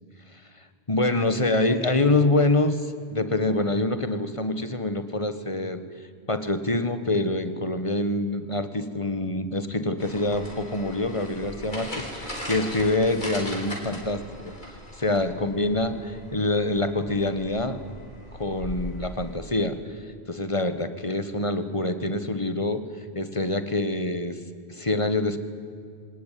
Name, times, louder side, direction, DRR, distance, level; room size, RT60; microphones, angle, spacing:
voice 1, 0.9-5.8 6.3-14.5 15.0-17.8 18.4-19.8 20.3-22.8 23.1-24.4 24.7-25.4, left 2 dB, 30° left, 11 dB, 1.6 m, -25 dB
sound 1, 10.0-19.3, equal, 45° left, 4.7 m, -39 dB
26.0 x 19.0 x 9.3 m, 2.3 s
omnidirectional pair, 1.1 m